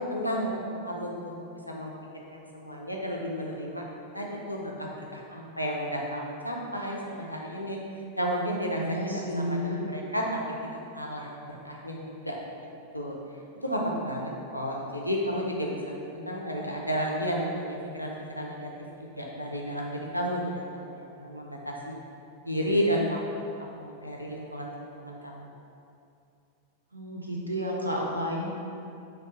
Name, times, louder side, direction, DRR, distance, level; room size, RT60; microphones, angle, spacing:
voice 1, 0.1-1.4 1.7-1.9 2.3-3.8 4.1-7.8 8.2-12.3 12.9-13.2 13.6-18.7 19.2-22.0 22.4-23.2 23.6-25.5, equal, 90° left, -2 dB, 0.4 m, -32 dB
voice 2, 8.8-9.8 26.9-28.5, equal, 85° right, -2 dB, 0.5 m, -31 dB
3.4 x 2.3 x 3.8 m, 2.6 s
figure-of-eight pair, 90°, 0 cm